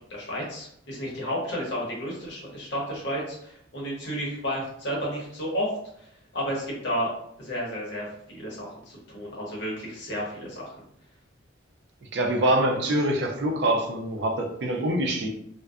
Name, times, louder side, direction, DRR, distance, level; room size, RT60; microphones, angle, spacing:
voice 1, 0.1-5.7 6.3-7.1 7.4-10.7, equal, 60° left, -4 dB, 0.8 m, -32 dB
voice 2, 12.1-15.3, right 1 dB, 55° right, 2 dB, 0.4 m, -25 dB
2.5 x 2.1 x 2.3 m, 0.72 s
head